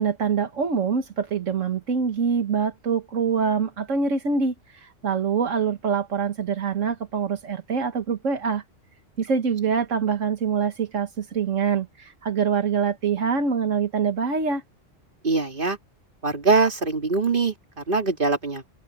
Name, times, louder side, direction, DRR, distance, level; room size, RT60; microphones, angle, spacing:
voice 1, 0.0-8.6 9.2-14.6, right 6 dB, 85° right, 1.8 m, -25 dB
voice 2, 15.2-15.8 16.2-18.6, right 3 dB, 45° right, 3.1 m, -23 dB
open air
omnidirectional pair, 1.3 m